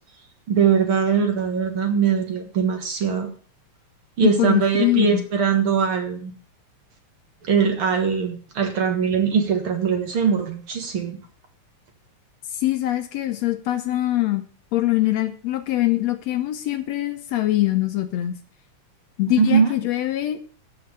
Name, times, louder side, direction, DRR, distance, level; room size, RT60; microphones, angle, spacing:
voice 1, 0.5-3.3 4.2-6.3 7.4-11.2 19.4-19.7, right 6 dB, 50° right, 5 dB, 2.1 m, -21 dB
voice 2, 4.2-5.2 12.5-14.4 14.7-18.4 19.2-20.4, left 15 dB, 70° left, 8 dB, 1.9 m, -23 dB
14.0 x 5.7 x 6.9 m, 0.43 s
omnidirectional pair, 3.5 m